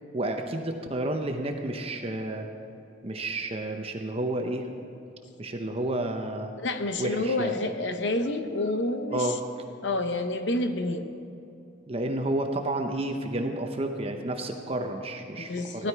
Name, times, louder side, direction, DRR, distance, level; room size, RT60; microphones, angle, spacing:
voice 1, 0.1-2.5 3.0-4.7 5.4-6.5 7.0-7.5 9.1-9.4 11.9-15.9, right 1 dB, 30° right, 4 dB, 0.8 m, -30 dB
voice 2, 6.6-9.3 9.8-11.1 15.4-15.9, left 2 dB, 65° left, 8 dB, 0.9 m, -28 dB
16.0 x 11.5 x 4.6 m, 2.7 s
head